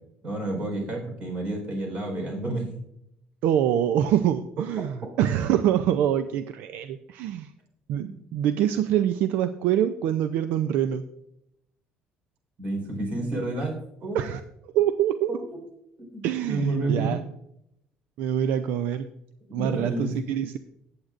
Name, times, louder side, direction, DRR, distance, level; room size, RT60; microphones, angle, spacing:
voice 1, 0.2-2.7 4.8-4.9 12.6-13.7 14.0-14.2 15.3-15.6 16.0-17.1 19.5-20.1, right 2 dB, 40° right, 2 dB, 4.4 m, -30 dB
voice 2, 3.4-7.5 7.9-11.0 14.1-15.4 16.2-17.2 18.2-19.0 19.5-20.6, right 10 dB, 70° right, 10 dB, 0.5 m, -25 dB
14.5 x 8.8 x 2.5 m, 0.79 s
cardioid pair, 160°, 3 cm